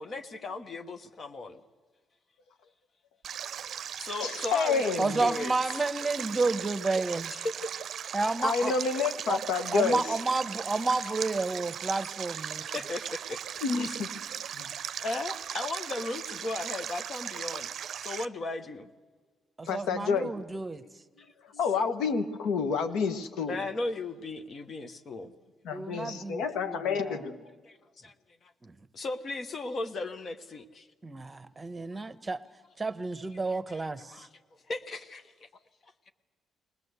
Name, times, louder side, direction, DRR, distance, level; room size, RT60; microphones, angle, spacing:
voice 1, 0.0-1.6 4.0-5.8 7.3-7.4 8.4-8.5 12.7-13.4 13.8-14.0 15.0-17.7 18.0-18.9 21.2-21.3 23.5-25.3 27.6-28.1 28.4-28.5 28.9-30.9 31.9-32.0 33.7-34.3 34.7-35.5, left 3 dB, 45° left, 8 dB, 1.2 m, -37 dB
Stream, 3.2-18.3, right 9 dB, 65° right, 0.5 m, -38 dB
voice 2, 4.2-5.2 8.4-10.0 13.6-14.1 14.5-14.7 19.6-20.3 21.5-23.6 25.6-27.4, left 5 dB, 85° left, 8 dB, 1.4 m, -29 dB
voice 3, 5.0-7.3 8.1-8.7 9.3-9.4 9.7-12.7 19.6-20.8 25.7-27.2 28.6-28.8 31.0-32.4 32.8-34.2, right 3 dB, 20° right, 13 dB, 1.0 m, -31 dB
20.5 x 19.0 x 8.1 m, 1.5 s
cardioid pair, 90°, 0 cm